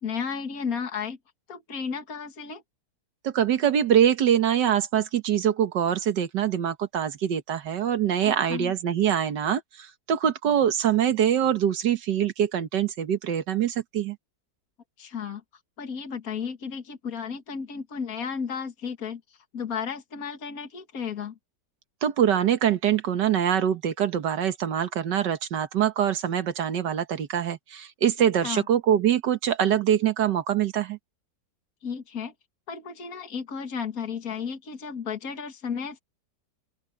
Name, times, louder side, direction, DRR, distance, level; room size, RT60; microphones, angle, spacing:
voice 1, 0.0-1.2 1.5-2.6 8.2-8.7 15.0-15.4 15.8-19.2 19.5-21.4 28.4-28.7 31.8-32.3 32.7-36.0, left 6 dB, 55° left, 2.4 m, -33 dB
voice 2, 3.2-14.2 22.0-31.0, right 9 dB, 80° right, 1.9 m, -24 dB
open air
omnidirectional pair, 1.8 m